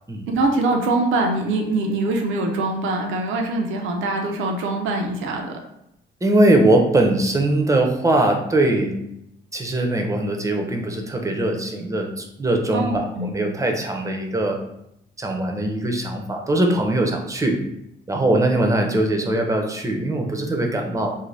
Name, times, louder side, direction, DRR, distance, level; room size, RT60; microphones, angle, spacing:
voice 1, 0.3-5.6 12.7-13.3, right 2 dB, 75° right, 2 dB, 0.5 m, -23 dB
voice 2, 6.2-9.0 9.5-14.6 15.2-17.6 18.1-21.1, right 1 dB, 15° right, 2 dB, 0.5 m, -21 dB
2.6 x 2.1 x 3.2 m, 0.79 s
cardioid pair, 90°, 20 cm